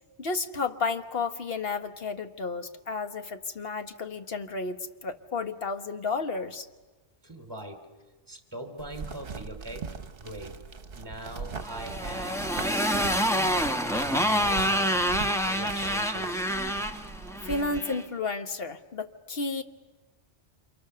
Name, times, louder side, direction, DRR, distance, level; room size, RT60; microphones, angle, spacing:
voice 1, 0.2-6.7 17.4-19.6, left 4 dB, 55° left, 8 dB, 1.4 m, -32 dB
voice 2, 7.2-7.9 8.3-9.9 10.2-10.6 10.9-13.5 14.0-15.0 15.4-16.4, right 1 dB, 20° right, 5 dB, 3.0 m, -41 dB
sound 1, 8.8-17.8, right 5 dB, 55° right, 1.3 m, -41 dB
Motorcycle, 11.6-18.0, equal, 5° left, 0.9 m, -27 dB
29.0 x 28.0 x 6.8 m, 1.2 s
omnidirectional pair, 1.2 m